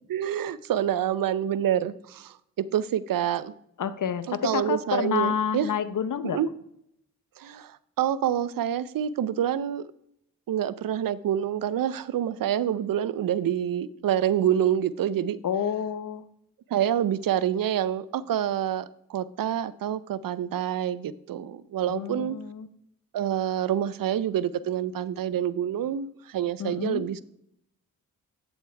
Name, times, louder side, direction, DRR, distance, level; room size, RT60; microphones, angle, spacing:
voice 1, 0.1-3.5 4.3-5.7 6.2-6.5 7.4-9.9 10.5-15.4 16.7-22.4 23.1-27.2, right 10 dB, 65° right, 0.6 m, -27 dB
voice 2, 3.8-6.4 15.4-16.2 21.9-22.7 26.6-27.1, left 8 dB, 55° left, 0.8 m, -29 dB
8.5 x 8.0 x 3.3 m
cardioid pair, 50°, 37 cm